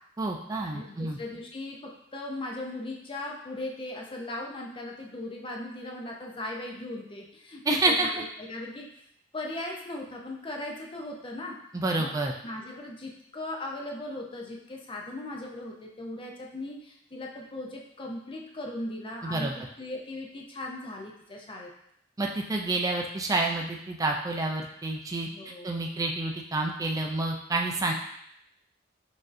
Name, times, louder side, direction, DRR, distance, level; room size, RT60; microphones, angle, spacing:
voice 1, 0.2-1.2 7.7-8.2 11.7-12.3 19.2-19.5 22.2-25.3 25.6-27.9, right 2 dB, 20° right, 0 dB, 0.3 m, -28 dB
voice 2, 0.7-8.9 9.3-11.6 12.0-12.1 12.4-21.7 25.3-25.9, left 1 dB, 25° left, 0 dB, 0.6 m, -38 dB
6.1 x 2.7 x 2.5 m, 0.73 s
head